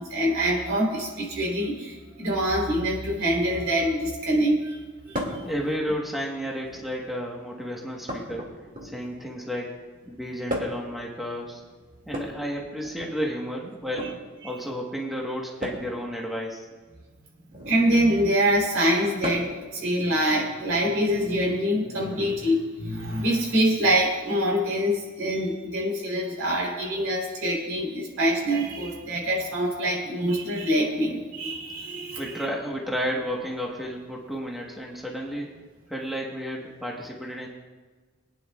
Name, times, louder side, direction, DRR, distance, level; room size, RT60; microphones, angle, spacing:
voice 1, 0.0-4.8 5.1-5.4 17.7-32.4, equal, 80° right, -2 dB, 3.5 m, -25 dB
sound 1, 5.1-5.5 6.5-7.0 8.1-9.2 10.5-10.9 12.0-13.1 13.8-14.1 15.6-15.9 17.5-17.8 19.2-19.6 21.1-21.2 22.4-22.5, equal, 40° right, 2.1 m, -34 dB
voice 2, 5.4-8.5 8.8-9.7 10.1-11.6 12.1-14.1 14.4-16.7 32.2-35.5 35.9-37.5, equal, ahead, -2 dB, 1.2 m, -32 dB
24.0 x 9.6 x 2.4 m, 1.3 s
head